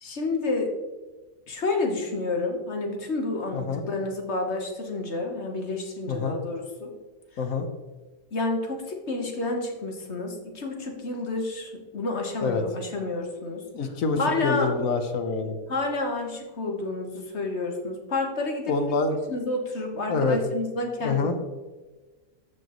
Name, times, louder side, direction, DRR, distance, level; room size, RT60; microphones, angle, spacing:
voice 1, 0.0-0.7 1.5-6.9 8.3-13.7 14.2-14.7 15.7-18.7 19.3-21.5, left 2 dB, 50° left, 2 dB, 1.5 m, -29 dB
voice 2, 3.5-3.8 6.1-6.4 7.4-7.7 12.4-12.6 13.7-15.6 18.7-19.2 20.1-20.4 21.0-21.4, left 4 dB, 70° left, 7 dB, 1.3 m, -26 dB
14.0 x 5.2 x 3.0 m, 1.3 s
omnidirectional pair, 1.5 m